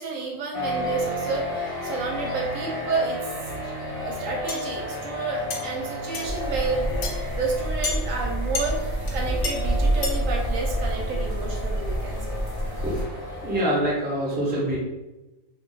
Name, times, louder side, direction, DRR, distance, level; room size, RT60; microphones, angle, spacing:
voice 1, 0.0-3.2 3.6-12.2, right 4 dB, 80° right, -1 dB, 1.0 m, -30 dB
sound 1, 0.5-13.6, left 1 dB, 45° left, 0.9 m, -33 dB
sound 2, 4.5-4.6 5.5-5.6 6.1-6.3 7.0-7.1 7.8-8.0 8.6-8.7 9.1-9.2 9.4-9.5 10.0-10.2, left 3 dB, 70° left, 0.9 m, -29 dB
sound 3, 6.2-13.1, right 1 dB, 50° right, 0.7 m, -28 dB
voice 2, 12.8-14.8, right 1 dB, 10° right, -5 dB, 0.6 m, -26 dB
2.4 x 2.3 x 3.8 m, 1.1 s
omnidirectional pair, 1.4 m